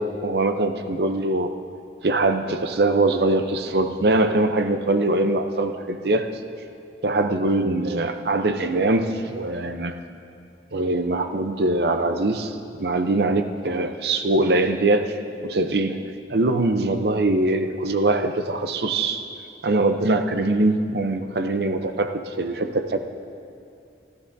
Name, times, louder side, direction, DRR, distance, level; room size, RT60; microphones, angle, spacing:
voice 1, 0.0-1.5 2.0-6.3 7.0-10.0 10.7-15.2 15.4-16.0 16.3-19.2 19.6-23.0, right 2 dB, 60° right, 8 dB, 0.6 m, -22 dB
28.5 x 12.5 x 2.7 m, 2.5 s
head